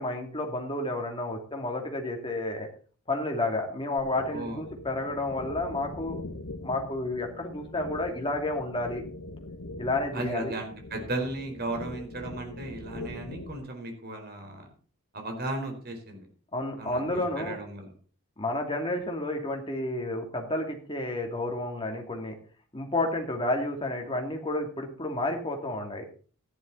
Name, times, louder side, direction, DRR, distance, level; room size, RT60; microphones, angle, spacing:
voice 1, 0.0-2.7 3.1-6.2 6.6-9.0 9.8-10.5 16.5-17.6 18.4-22.4 22.7-26.0, left 2 dB, 25° left, 2 dB, 2.6 m, -31 dB
sound 1, 4.0-13.6, left 2 dB, 80° left, 1.3 m, -42 dB
voice 2, 4.3-4.6 10.1-14.7 15.1-16.3 16.8-17.9, right 2 dB, 45° right, 3 dB, 4.3 m, -35 dB
14.0 x 11.0 x 4.1 m, 0.41 s
head